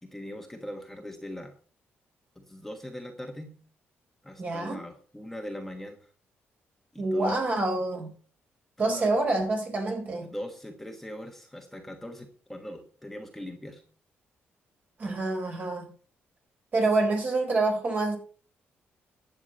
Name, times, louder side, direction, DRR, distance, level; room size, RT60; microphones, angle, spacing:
voice 1, 0.0-1.5 2.3-3.5 4.2-6.1 6.9-7.5 8.8-9.1 10.2-13.8, equal, 5° left, 1.3 m, -41 dB
voice 2, 4.4-4.8 7.0-8.1 8.8-10.3 15.0-15.9 16.7-18.2, right 2 dB, 40° right, 4.3 m, -27 dB
11.0 x 8.2 x 5.3 m
cardioid pair, 145°, 4 cm